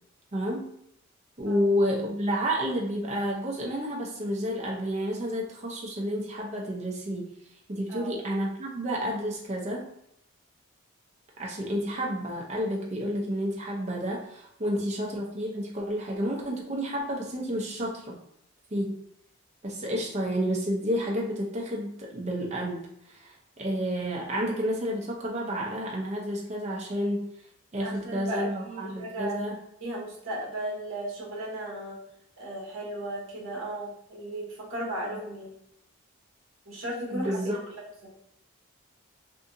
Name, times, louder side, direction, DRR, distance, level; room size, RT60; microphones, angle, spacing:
voice 1, 0.3-0.7 1.4-7.3 7.7-9.9 11.4-18.1 18.7-19.0 19.6-27.3 27.7-29.5 37.1-37.6, equal, 30° right, -2 dB, 0.5 m, -30 dB
voice 2, 27.8-29.4 29.8-32.0 32.4-35.5 36.7-37.4 38.0-38.1, right 1 dB, 65° right, -3 dB, 0.9 m, -35 dB
2.6 x 2.5 x 2.5 m, 0.76 s
head